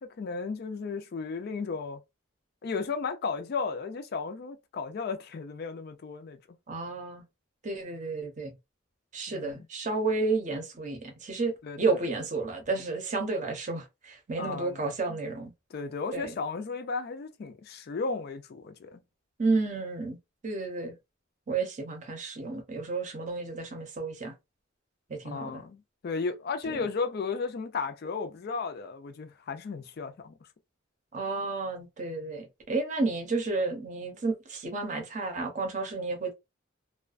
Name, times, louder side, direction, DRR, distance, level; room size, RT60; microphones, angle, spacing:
voice 1, 0.0-2.0 2.6-6.4 9.3-9.6 11.6-12.0 14.4-14.8 15.1-15.2 15.7-19.0 25.2-30.3, left 4 dB, 50° left, 0.4 m, -34 dB
voice 2, 6.7-7.2 7.6-8.5 9.1-15.5 16.1-16.4 19.4-20.2 20.4-20.9 21.5-24.3 25.1-25.6 26.7-26.9 31.1-36.3, right 3 dB, 35° right, 0.7 m, -31 dB
2.4 x 2.2 x 2.4 m
head